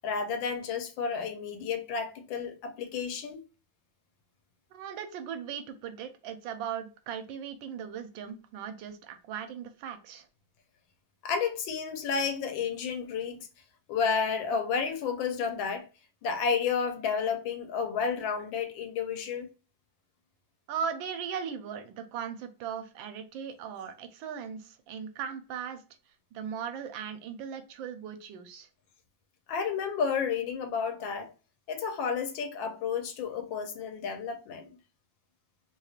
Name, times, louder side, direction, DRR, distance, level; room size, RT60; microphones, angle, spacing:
voice 1, 0.0-3.4 11.2-13.5 13.9-15.9 16.2-19.5 29.5-31.3 31.7-34.8, left 6 dB, 85° left, 1.4 m, -31 dB
voice 2, 4.7-10.2 20.7-25.8 26.3-28.7, right 7 dB, 85° right, 1.3 m, -38 dB
3.3 x 2.4 x 2.8 m
omnidirectional pair, 2.1 m